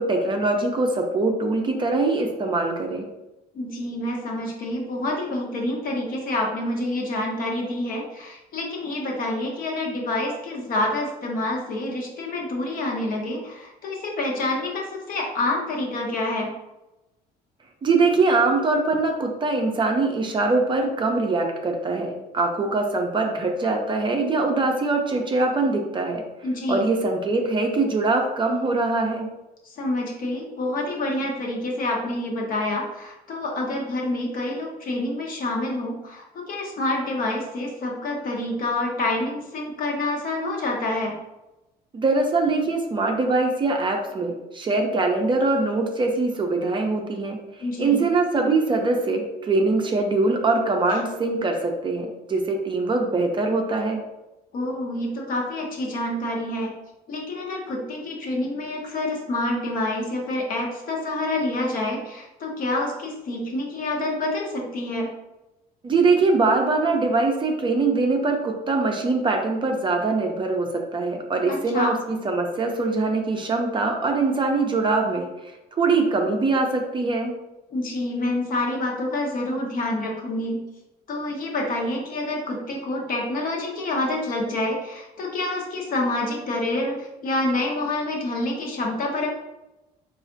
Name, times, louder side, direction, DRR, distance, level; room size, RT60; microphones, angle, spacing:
voice 1, 0.0-3.1 17.8-26.2 26.7-29.3 41.9-47.4 47.8-54.0 65.8-77.3, right 3 dB, 30° right, 2 dB, 0.5 m, -23 dB
voice 2, 3.5-16.5 26.4-26.9 29.6-41.2 47.6-48.0 54.5-56.7 57.1-65.1 71.5-71.9 77.7-80.6 81.1-89.3, left 2 dB, 55° left, -1 dB, 0.8 m, -27 dB
4.0 x 2.4 x 2.5 m, 1.0 s
cardioid pair, 110°, 17 cm